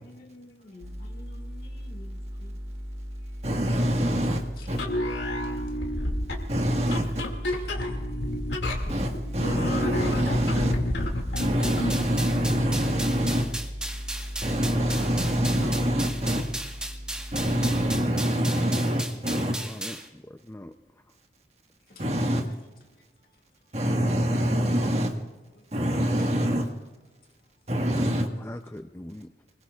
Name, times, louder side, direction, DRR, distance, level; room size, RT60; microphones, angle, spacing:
voice 1, 0.2-2.6 12.9-13.2 19.5-19.6 21.9-22.0 26.3-26.4, left 1 dB, 55° left, 2.0 m, -48 dB
sound 1, 0.8-18.0, equal, 75° right, 2.0 m, -37 dB
voice 2, 3.4-4.8 6.5-7.3 8.9-10.8 11.4-13.5 14.4-16.5 17.3-19.6 22.0-22.5 23.7-25.1 25.7-26.7 27.7-28.3, equal, 35° right, 1.6 m, -25 dB
sound 2, 4.7-12.0, left 1 dB, 80° left, 2.3 m, -30 dB
sound 3, 11.4-20.1, right 1 dB, 5° right, 1.3 m, -36 dB
voice 3, 19.6-20.7 28.0-28.1 28.4-29.3, left 1 dB, 15° left, 0.5 m, -41 dB
25.5 x 21.5 x 2.4 m
head